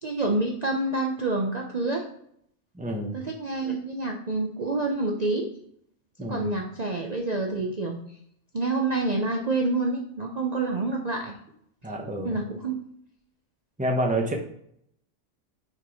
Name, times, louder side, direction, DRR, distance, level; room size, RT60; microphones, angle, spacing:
voice 1, 0.0-2.0 3.1-5.5 6.3-8.0 8.5-11.3 11.8-11.9 12.2-12.7, right 2 dB, 40° right, 1 dB, 0.8 m, -27 dB
voice 2, 2.7-3.2 6.2-6.5 11.8-12.4 13.8-14.3, right 1 dB, 5° right, 1 dB, 1.0 m, -28 dB
6.2 x 4.6 x 4.8 m, 0.71 s
omnidirectional pair, 1.2 m